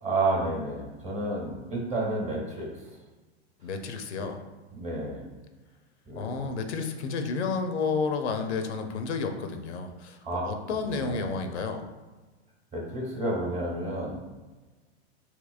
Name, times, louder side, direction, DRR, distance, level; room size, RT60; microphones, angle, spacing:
voice 1, 0.0-2.9 4.7-5.2 6.1-6.5 10.2-10.4 10.8-11.3 12.7-14.2, right 2 dB, 20° right, -2 dB, 1.0 m, -31 dB
voice 2, 3.6-4.4 6.2-10.2 10.4-11.9, left 4 dB, 85° left, 6 dB, 0.5 m, -31 dB
3.6 x 2.9 x 2.4 m, 1.2 s
hypercardioid pair, 130°, 33 cm